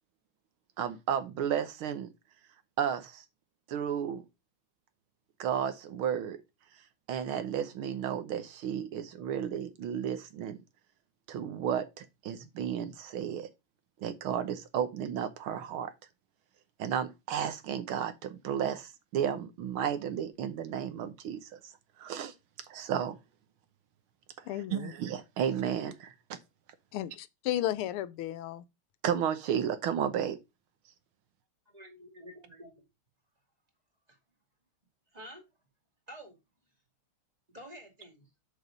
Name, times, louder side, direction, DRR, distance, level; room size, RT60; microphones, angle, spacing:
voice 1, 0.8-2.1 2.8-3.2 3.7-4.2 5.4-6.4 7.1-10.6 11.3-13.5 14.0-15.9 16.8-21.7 22.0-22.3 22.7-23.2 24.7-26.4 29.0-30.4, right 9 dB, 75° right, 1.7 m, -33 dB
voice 2, 24.5-24.9 26.9-28.6, left 13 dB, 85° left, 1.5 m, -34 dB
voice 3, 31.7-32.9 34.1-34.2 35.1-35.4 36.1-36.4 37.5-38.3, equal, 20° right, 2.4 m, -49 dB
6.6 x 5.0 x 5.2 m
omnidirectional pair, 2.4 m